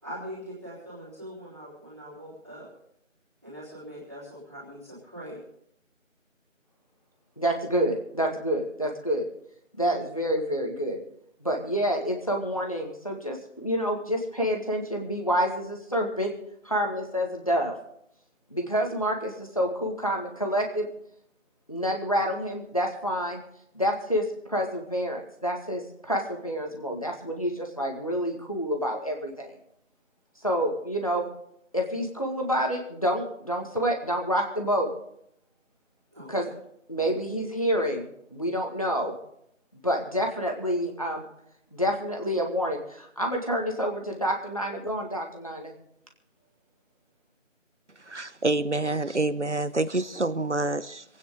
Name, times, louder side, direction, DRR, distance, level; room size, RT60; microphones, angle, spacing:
voice 1, 0.0-2.7 3.4-5.4 36.1-36.5, equal, 10° right, -8 dB, 3.8 m, -42 dB
voice 2, 7.4-9.3 9.8-11.0 11.4-16.3 16.6-17.8 18.5-20.9 21.7-23.4 23.7-29.6 30.4-31.3 31.7-34.9 36.3-36.5 36.9-39.2 39.8-41.3 41.7-45.7, equal, 25° left, 1 dB, 1.9 m, -28 dB
voice 3, 48.1-51.0, right 2 dB, 60° right, 15 dB, 1.0 m, -27 dB
27.0 x 9.4 x 3.8 m, 0.73 s
figure-of-eight pair, 175°, 39 cm